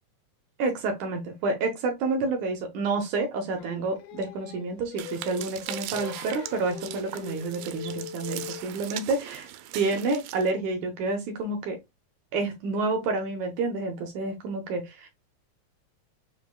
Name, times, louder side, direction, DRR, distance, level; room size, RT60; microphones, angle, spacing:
voice 1, 0.6-9.5 9.7-11.8 12.3-15.1, right 3 dB, 70° right, 2.2 m, -29 dB
Singing, 3.6-8.8, left 9 dB, 70° left, 1.5 m, -41 dB
sound 1, 5.0-10.5, right 14 dB, 85° right, 2.2 m, -40 dB
6.8 x 2.7 x 2.3 m
omnidirectional pair, 3.8 m